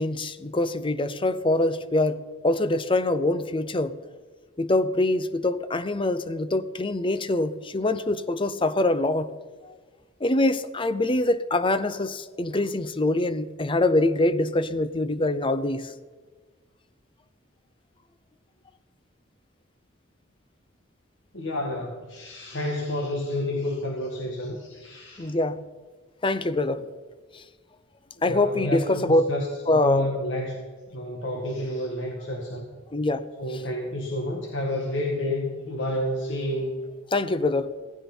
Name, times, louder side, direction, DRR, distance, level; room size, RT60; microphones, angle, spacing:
voice 1, 0.0-4.0 4.6-9.3 9.6-9.7 10.2-15.9 25.2-25.6 26.2-26.9 27.3-27.4 28.2-29.2 29.7-30.1 32.9-33.2 37.1-37.7, left 2 dB, 25° left, 13 dB, 0.7 m, -24 dB
voice 2, 21.3-25.3 28.2-29.5 29.8-30.6 30.9-32.7 33.4-36.8, left 1 dB, 70° left, 0 dB, 2.0 m, -30 dB
16.5 x 15.5 x 4.5 m, 1.4 s
head